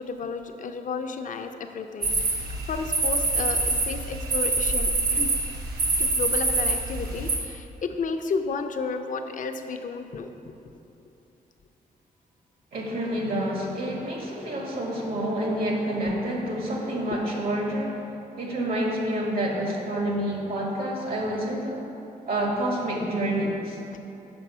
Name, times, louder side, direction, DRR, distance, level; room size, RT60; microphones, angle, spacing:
voice 1, 0.0-5.3 6.0-10.3 23.9-24.0, left 4 dB, 55° left, 6 dB, 0.5 m, -32 dB
sound 1, 2.0-7.4, right 3 dB, 90° right, 1.1 m, -25 dB
voice 2, 12.7-18.0 18.4-21.8 22.3-23.8, right 1 dB, 75° right, -1 dB, 1.5 m, -28 dB
7.0 x 5.3 x 5.5 m, 2.9 s
cardioid pair, 95°, 16 cm